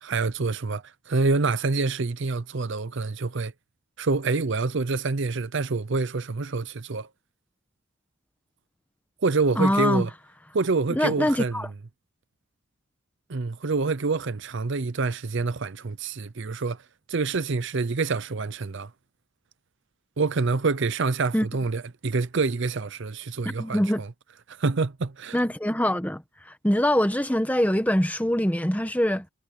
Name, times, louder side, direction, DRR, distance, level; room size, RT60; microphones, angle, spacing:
voice 1, 0.0-3.5 4.0-7.1 9.2-10.1 10.5-11.6 13.3-16.8 17.1-18.9 20.2-24.1 24.5-25.4, right 3 dB, 55° right, 0.6 m, -27 dB
voice 2, 9.6-10.1 10.9-11.7 21.3-21.5 23.4-24.0 25.3-26.2 26.6-29.2, equal, 5° left, 1.3 m, -23 dB
head